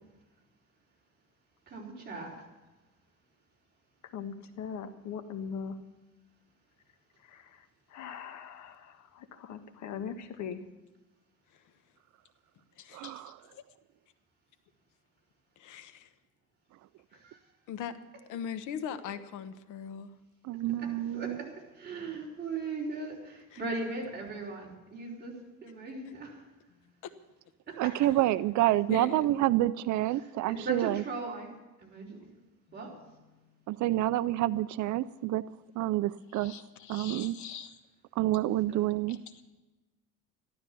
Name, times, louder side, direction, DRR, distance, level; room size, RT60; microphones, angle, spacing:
voice 1, 1.7-2.4 17.2-17.4 20.7-26.4 27.7-28.1 30.2-31.5 31.8-32.3 32.7-33.0 38.7-38.8, right 3 dB, 35° right, -3 dB, 4.4 m, -39 dB
voice 2, 4.0-5.8 7.3-7.5 7.9-10.6 13.0-13.1 36.3-37.7 39.1-39.4, left 7 dB, 70° left, 8 dB, 1.5 m, -41 dB
voice 3, 12.9-13.4 20.4-21.4 27.8-31.0 33.7-35.4 35.8-36.5 36.9-37.4 38.2-39.2, right 15 dB, 70° right, 15 dB, 0.5 m, -28 dB
voice 4, 15.6-16.1 17.7-17.9 18.3-20.1 23.5-23.6 27.0-27.1 28.9-29.4, left 8 dB, 85° left, 10 dB, 1.1 m, -39 dB
14.0 x 12.5 x 6.9 m, 1.1 s
cardioid pair, 145°, 31 cm